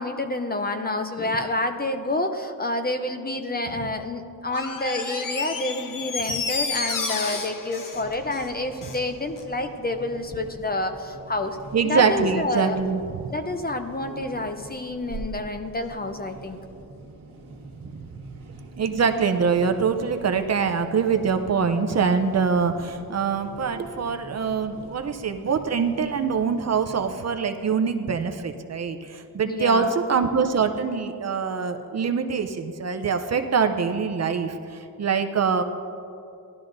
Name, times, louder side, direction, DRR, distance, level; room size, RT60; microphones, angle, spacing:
voice 1, 0.0-11.6 11.8-12.8 13.3-16.6 29.4-29.9, left 2 dB, 25° left, 7 dB, 0.5 m, -28 dB
Door, 4.5-9.1 9.4-9.5, left 4 dB, 55° left, 0.9 m, -31 dB
sound 1, 7.9-27.1, right 3 dB, 60° right, 1.6 m, -45 dB
voice 2, 11.7-13.2 14.1-14.2 17.8-18.2 18.8-35.6, right 5 dB, 45° right, 7 dB, 0.6 m, -24 dB
17.0 x 12.0 x 2.6 m, 2.6 s
wide cardioid pair, 145°, 38 cm